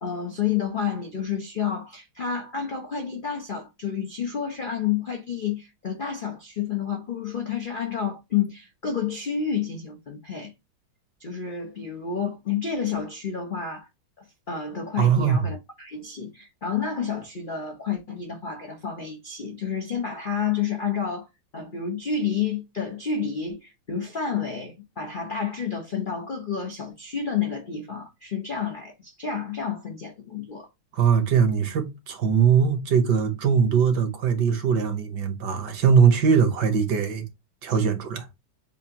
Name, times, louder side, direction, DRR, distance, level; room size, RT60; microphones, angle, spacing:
voice 1, 0.0-10.5 11.2-13.9 14.2-21.3 21.5-30.7, left 7 dB, 60° left, 0.5 m, -30 dB
voice 2, 15.0-15.5 30.9-37.2 37.6-38.3, right 6 dB, 65° right, 1.4 m, -21 dB
7.1 x 2.5 x 2.9 m
omnidirectional pair, 2.1 m